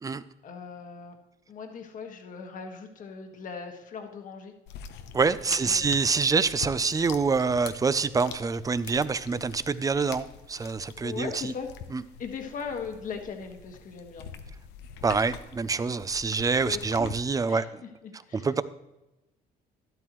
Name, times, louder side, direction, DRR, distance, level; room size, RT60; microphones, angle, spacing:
voice 1, 0.4-1.1 1.5-4.5 5.5-6.2 11.0-11.7 12.2-14.3 16.6-17.1 17.5-18.5, left 5 dB, 50° left, 4 dB, 1.6 m, -39 dB
sound 1, 4.7-17.2, left 7 dB, 85° left, 0.8 m, -45 dB
voice 2, 5.1-11.5 11.9-12.0 15.0-17.8 18.3-18.6, right 4 dB, 20° right, 15 dB, 0.5 m, -26 dB
12.0 x 12.0 x 3.1 m, 0.99 s
cardioid pair, 110°, 17 cm